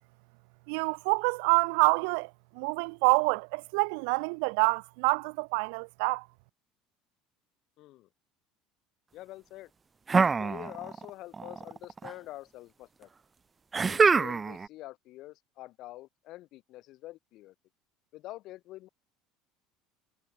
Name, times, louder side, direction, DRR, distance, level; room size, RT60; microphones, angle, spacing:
voice 1, 0.7-6.3, right 36 dB, 80° right, 0.8 m, -27 dB
voice 2, 7.8-8.1 9.1-9.7 10.2-13.1 13.7-17.5 18.1-18.9, left 17 dB, 50° left, 4.3 m, -46 dB
sound 1, 10.1-11.1 11.3-12.1 13.7-14.7, right 5 dB, 15° right, 0.8 m, -25 dB
cardioid pair, 155°, 0 cm